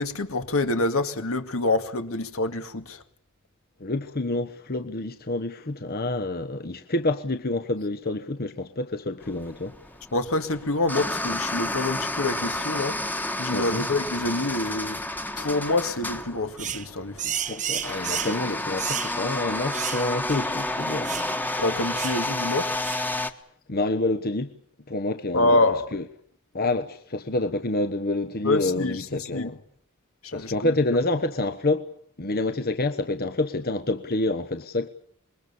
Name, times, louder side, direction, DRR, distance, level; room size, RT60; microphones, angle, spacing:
voice 1, 0.0-3.0 10.1-15.0 15.4-17.4 21.6-22.7 25.3-25.9 28.4-29.5 30.2-30.7, left 2 dB, 75° left, 2.3 m, -26 dB
voice 2, 3.8-9.8 13.5-13.8 17.5-21.1 23.7-24.5 24.9-25.6 25.9-26.0 26.5-29.6 30.3-31.9 32.2-34.9, left 2 dB, 45° left, 1.2 m, -28 dB
sound 1, 9.2-23.3, left 1 dB, 10° left, 1.4 m, -31 dB
sound 2, 16.6-16.9 17.2-18.4 18.8-19.1 19.7-20.0 20.3-20.4 21.0-21.3 21.9-22.2 22.8-23.1, right 9 dB, 35° right, 1.1 m, -31 dB
26.0 x 22.0 x 7.1 m
head